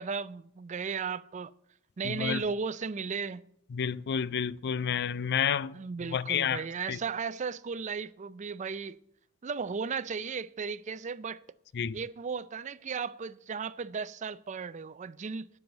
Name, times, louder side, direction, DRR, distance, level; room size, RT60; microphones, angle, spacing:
voice 1, 0.0-1.5 2.0-3.4 5.7-9.0 9.4-11.4 11.9-15.5, right 5 dB, 35° right, 0.4 m, -35 dB
voice 2, 2.0-2.4 3.7-5.8 6.1-6.6 6.9-7.0 11.8-12.0, left 8 dB, 55° left, 0.4 m, -30 dB
10.5 x 7.1 x 7.9 m
head